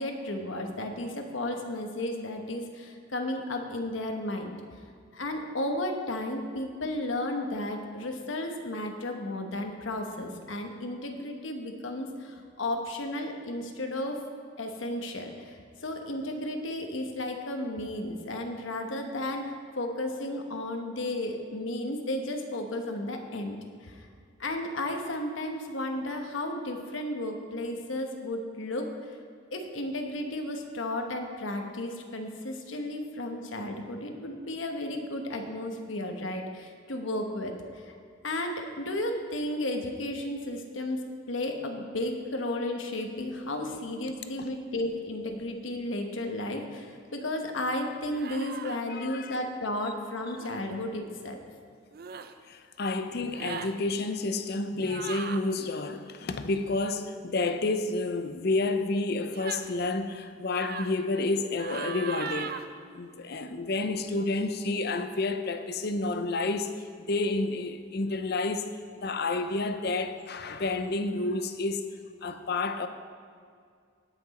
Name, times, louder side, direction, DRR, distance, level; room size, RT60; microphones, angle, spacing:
voice 1, 0.0-4.6 5.1-14.2 14.6-24.1 24.4-29.2 29.5-37.9 38.2-41.0 41.3-51.4, left 1 dB, 80° left, 1.1 m, -33 dB
sound 1, 48.1-48.8 50.3-50.6 51.9-52.3 53.2-53.7 54.8-55.4 59.3-59.7 60.5-60.9 61.6-62.6, right 6 dB, 50° right, 0.5 m, -38 dB
voice 2, 48.9-49.4 52.5-62.6 62.9-66.7 67.1-68.7 69.0-71.8 72.2-72.9, left 3 dB, 55° left, 0.6 m, -30 dB
17.5 x 6.0 x 4.2 m
head